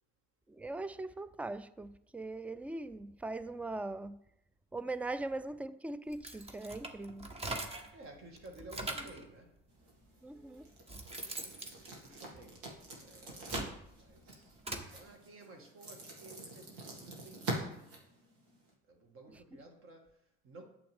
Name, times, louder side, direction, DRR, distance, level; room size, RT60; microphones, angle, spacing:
voice 1, 0.5-4.2 4.7-7.3 10.2-10.7, right 2 dB, 5° right, 0.3 m, -40 dB
sound 1, 6.1-8.0 8.4-9.2 10.1-10.2 10.6-12.8 13.2-14.9, right 2 dB, 20° right, 1.1 m, -42 dB
voice 2, 7.6-9.6 10.1-10.6 11.4-18.0 18.4-18.5 18.8-20.6, right 2 dB, 45° right, 1.9 m, -55 dB
sound 2, 9.7-18.7, right 2 dB, 75° right, 2.3 m, -45 dB
8.6 x 7.1 x 3.6 m
hypercardioid pair, 85°, 29 cm